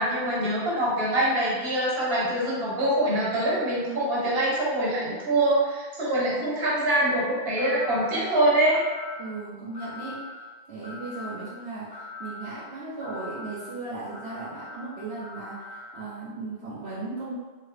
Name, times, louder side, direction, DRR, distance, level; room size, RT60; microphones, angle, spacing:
voice 1, 0.0-8.8, right 1 dB, 70° right, -6 dB, 1.3 m, -24 dB
sound 1, 7.6-8.1 8.7-9.2 9.7-10.3 10.8-11.4 11.9-12.5 13.0-13.6 14.1-16.0, left 2 dB, 60° left, 1.2 m, -41 dB
voice 2, 9.2-10.2 10.7-17.3, right 3 dB, 85° right, -8 dB, 1.0 m, -37 dB
2.8 x 2.8 x 3.3 m, 1.3 s
omnidirectional pair, 1.1 m